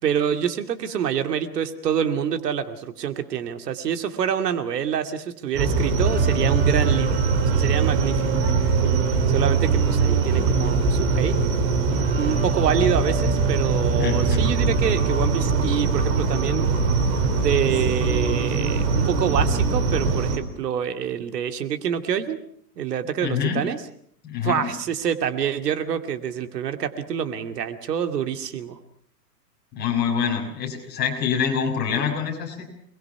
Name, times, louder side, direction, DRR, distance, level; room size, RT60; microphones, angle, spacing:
voice 1, 0.0-7.2 7.4-8.2 9.3-11.3 12.1-16.7 17.4-22.4 22.8-23.8 24.4-28.8, right 8 dB, 75° right, 8 dB, 2.5 m, -26 dB
sound 1, 5.5-20.4, right 4 dB, 40° right, 4.5 m, -21 dB
voice 2, 14.0-14.4 23.2-23.6 24.2-24.7 29.7-32.7, left 7 dB, 20° left, 0 dB, 6.0 m, -25 dB
28.0 x 21.5 x 5.9 m, 0.63 s
hypercardioid pair, 155°, 49 cm